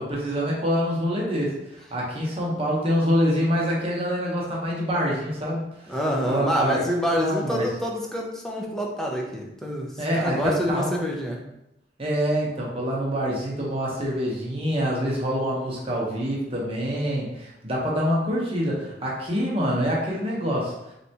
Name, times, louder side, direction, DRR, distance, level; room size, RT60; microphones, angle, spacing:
voice 1, 0.0-5.9 6.3-6.8 7.1-7.7 10.0-10.9 12.0-20.7, equal, 35° right, -4 dB, 1.0 m, -26 dB
voice 2, 5.9-11.4, equal, 5° left, -1 dB, 0.6 m, -27 dB
4.1 x 3.3 x 2.8 m, 0.88 s
head